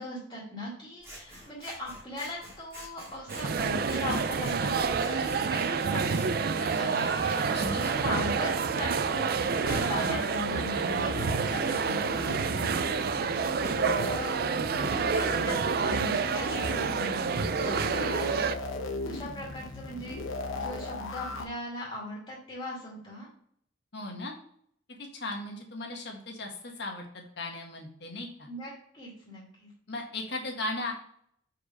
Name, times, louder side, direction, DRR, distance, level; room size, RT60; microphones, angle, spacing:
voice 1, 0.0-13.8 14.1-14.4 14.8-17.5 18.0-18.4 19.0-20.2 20.5-23.3 28.5-29.7, left 1 dB, 25° left, -5 dB, 2.2 m, -39 dB
Scissors, 1.0-8.0, right 1 dB, 15° right, 1.9 m, -49 dB
sound 1, 3.3-18.6, right 5 dB, 50° right, 0.4 m, -28 dB
sound 2, 7.0-21.5, left 2 dB, 85° left, 0.9 m, -39 dB
voice 2, 7.5-7.9 17.5-18.1 23.9-24.3 25.0-28.5 29.9-30.9, left 2 dB, 60° left, 1 dB, 1.5 m, -37 dB
4.8 x 4.5 x 5.3 m, 0.65 s
head